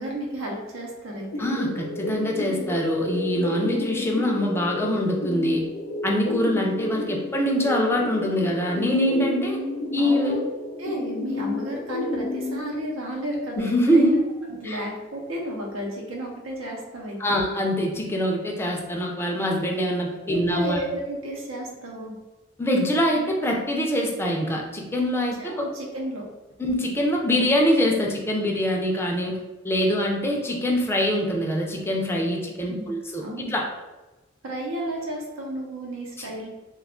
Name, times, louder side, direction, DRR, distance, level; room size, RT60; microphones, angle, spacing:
voice 1, 0.0-1.4 10.0-10.4 10.8-14.2 14.5-17.4 20.3-22.1 25.4-26.2 32.7-32.9 33.2-33.5 34.4-36.5, right 1 dB, 85° right, -1 dB, 0.7 m, -32 dB
sound 1, 1.3-12.6, left 2 dB, 60° left, 0.6 m, -31 dB
voice 2, 1.4-5.6 6.0-9.6 9.9-10.4 13.6-14.2 14.6-14.8 17.2-20.8 22.6-25.7 26.6-29.4 29.6-33.2 33.5-33.6 36.2-36.3, equal, 10° left, -1 dB, 0.4 m, -24 dB
2.4 x 2.3 x 3.6 m, 1.1 s
head